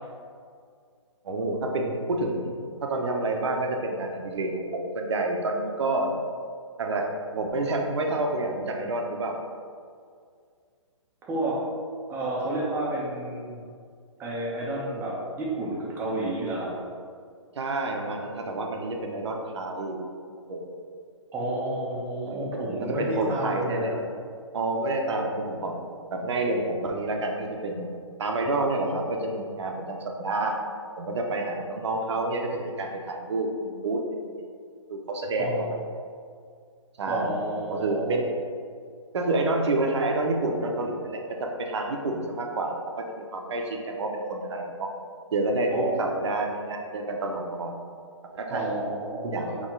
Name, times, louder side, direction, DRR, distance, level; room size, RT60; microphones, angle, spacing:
voice 1, 1.2-2.5 2.8-6.1 6.8-7.1 7.3-9.4 17.5-20.0 20.5-20.6 22.2-22.5 22.8-24.0 24.5-25.8 26.1-27.9 28.2-30.6 31.0-34.0 34.9-35.8 37.0-37.3 37.7-38.3 39.1-44.9 45.3-47.7 48.3-48.7 49.2-49.5, right 2 dB, 60° right, 2 dB, 0.7 m, -28 dB
voice 2, 11.2-11.6 12.1-13.6 14.2-16.7 21.3-24.0 35.4-35.7 37.1-38.2 45.7-46.3 48.5-49.6, right 1 dB, 15° right, -4 dB, 0.7 m, -30 dB
4.3 x 3.0 x 3.7 m, 2.2 s
figure-of-eight pair, 135°, 16 cm